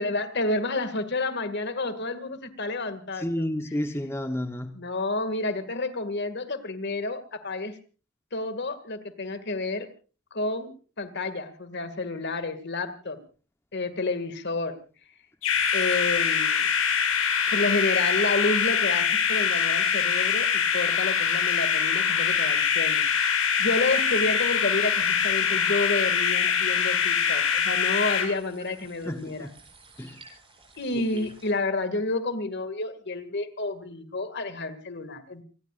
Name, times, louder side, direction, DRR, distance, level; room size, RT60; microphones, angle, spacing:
voice 1, 0.0-3.7 4.7-7.8 8.3-9.9 10.3-13.2 13.7-14.8 15.7-16.7 17.5-23.1 23.6-29.5 30.8-35.4, left 2 dB, 55° left, 2.2 m, -30 dB
voice 2, 3.2-4.8 29.1-29.5 30.0-30.2, left 1 dB, 10° left, 1.0 m, -31 dB
sound 1, 15.4-28.3, left 7 dB, 80° left, 5.4 m, -24 dB
sound 2, 15.5-31.5, right 2 dB, 25° right, 7.5 m, -44 dB
29.0 x 20.0 x 2.5 m
head